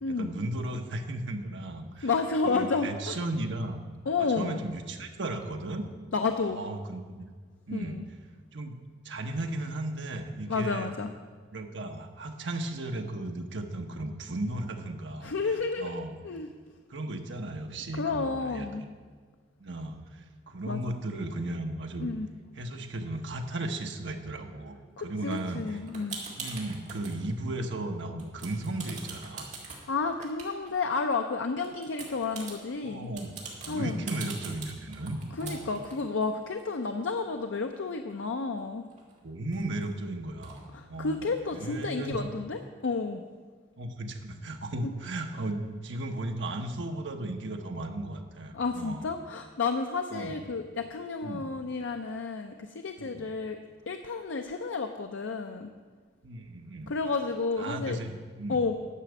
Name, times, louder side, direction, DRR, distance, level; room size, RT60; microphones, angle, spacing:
voice 1, 0.1-2.1 2.4-3.8 4.2-5.8 6.5-7.3 7.7-8.0 8.5-8.8 9.0-10.9 11.5-15.3 15.8-16.1 16.9-18.9 19.6-22.1 22.6-25.8 26.4-29.5 32.8-33.3 33.6-35.8 39.2-42.2 43.8-49.1 50.1-50.4 51.2-51.5 53.0-53.3 56.2-56.9 57.6-58.6, right 1 dB, 75° right, 4 dB, 1.0 m, -35 dB
voice 2, 2.0-3.2 4.1-4.6 6.1-6.6 7.7-8.0 10.5-11.1 15.2-16.5 18.0-18.8 20.7-20.8 22.0-22.3 25.0-26.2 29.9-33.1 33.7-34.1 35.4-38.8 40.7-43.2 48.5-53.6 53.9-55.7 56.9-58.0 58.5-58.8, left 4 dB, 85° left, 6 dB, 0.5 m, -31 dB
sound 1, 25.3-27.2 27.6-27.9 28.2-31.2 31.6-37.8 38.1-38.2 38.4-39.8 40.4-40.6, right 4 dB, 40° right, 1.9 m, -43 dB
10.0 x 6.1 x 8.0 m, 1.5 s
head